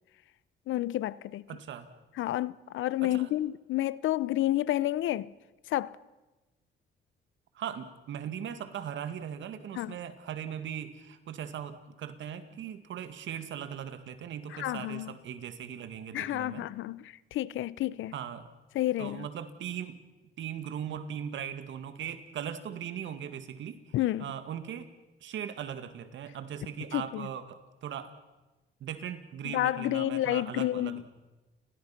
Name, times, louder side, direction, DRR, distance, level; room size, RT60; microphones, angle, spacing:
voice 1, 0.7-1.4 2.2-5.3 5.7-6.0 9.8-10.0 14.5-15.2 16.1-18.1 18.7-19.3 23.9-24.3 26.9-27.3 29.4-31.0, left 14 dB, 80° left, 0.7 m, -30 dB
voice 2, 1.5-1.9 3.0-3.3 7.5-16.7 18.1-18.5 19.0-20.0 20.4-23.8 24.2-24.9 25.2-28.1 28.8-31.0, right 9 dB, 70° right, 2.2 m, -39 dB
30.0 x 20.0 x 6.0 m
cardioid pair, 90°, 20 cm